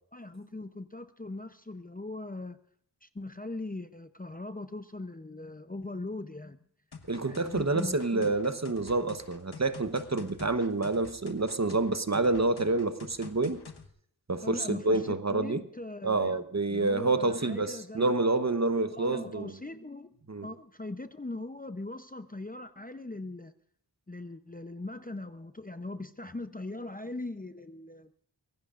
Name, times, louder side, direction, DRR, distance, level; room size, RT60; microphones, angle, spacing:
voice 1, 0.1-2.6 3.0-6.6 7.2-8.4 14.4-16.4 16.7-18.2 18.9-20.1 20.4-23.5 24.1-28.1, left 2 dB, 20° left, 0.7 m, -40 dB
sound 1, 6.9-13.9, left 5 dB, 60° left, 1.3 m, -48 dB
voice 2, 7.1-13.6 14.3-15.6 16.0-19.5 20.3-20.5, right 3 dB, 35° right, 1.0 m, -28 dB
25.0 x 16.5 x 2.5 m
wide cardioid pair, 60°, 45 cm